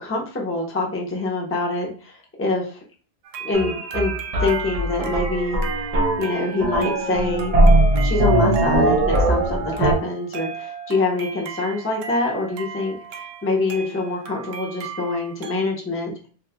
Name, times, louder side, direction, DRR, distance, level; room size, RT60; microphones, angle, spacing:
voice 1, 0.0-2.8 3.4-4.1 4.4-5.6 6.2-7.6 8.0-16.3, left 2 dB, 15° left, -2 dB, 0.6 m, -25 dB
sound 1, 3.2-15.6, right 7 dB, 90° right, 0.9 m, -37 dB
sound 2, 3.5-9.9, right 1 dB, 45° right, 0.5 m, -20 dB
3.0 x 2.6 x 2.3 m, 0.42 s
omnidirectional pair, 1.3 m